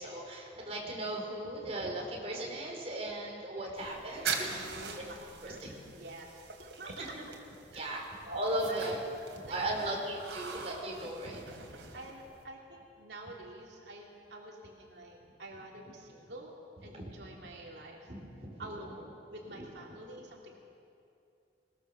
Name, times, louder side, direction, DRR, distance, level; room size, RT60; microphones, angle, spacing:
voice 1, 0.0-4.7 5.4-5.7 6.9-7.2 7.7-9.0 9.3-11.4 16.8-17.1 18.1-18.7 19.5-19.6, right 1 dB, 35° right, -1 dB, 4.4 m, -37 dB
sound 1, 3.8-12.4, right 5 dB, 90° right, 3.0 m, -43 dB
voice 2, 4.1-6.3 6.6-7.3 7.7-8.1 8.7-9.0 9.4-10.1 11.9-16.5 16.8-18.1 18.6-20.6, right 1 dB, 65° right, -1 dB, 3.0 m, -48 dB
21.0 x 21.0 x 7.0 m, 2.6 s
head